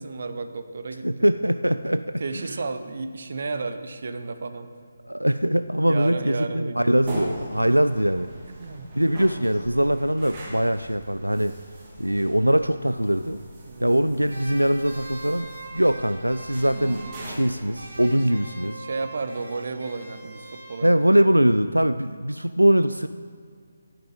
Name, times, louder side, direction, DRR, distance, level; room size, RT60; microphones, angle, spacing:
voice 1, 0.0-1.3 2.2-4.7 5.8-6.9 8.5-8.9 13.6-14.0 18.8-21.0, right 3 dB, 50° right, 9 dB, 0.8 m, -32 dB
voice 2, 1.0-2.6 5.0-8.3 9.0-11.5 12.0-13.4 13.8-15.5 15.7-18.8 20.8-23.1, right 1 dB, 85° right, 11 dB, 0.3 m, -22 dB
sound 1, 6.9-18.2, right 1 dB, 25° right, 2.1 m, -40 dB
sound 2, 14.3-17.5 17.7-21.1, right 2 dB, 65° right, 3.3 m, -42 dB
9.3 x 6.9 x 7.9 m, 2.1 s
figure-of-eight pair, 150°, 0 cm